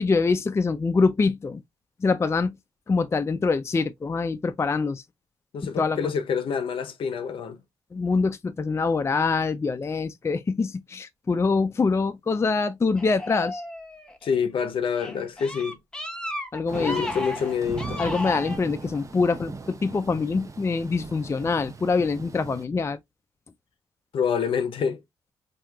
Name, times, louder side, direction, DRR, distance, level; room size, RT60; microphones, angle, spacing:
voice 1, 0.0-1.6 2.0-2.6 2.9-5.0 5.6-6.1 7.9-13.6 16.5-17.0 18.0-23.0, left 4 dB, 25° left, 0.4 m, -24 dB
voice 2, 5.5-7.6 14.2-15.8 16.8-18.0 24.1-25.0, left 6 dB, 60° left, 0.7 m, -27 dB
sound 1, 13.0-14.3 14.9-18.6, left 1 dB, 10° left, 1.0 m, -34 dB
Thunder / Rain, 16.7-22.7, right 4 dB, 30° right, 0.6 m, -39 dB
4.3 x 2.7 x 2.3 m
hypercardioid pair, 50°, 10 cm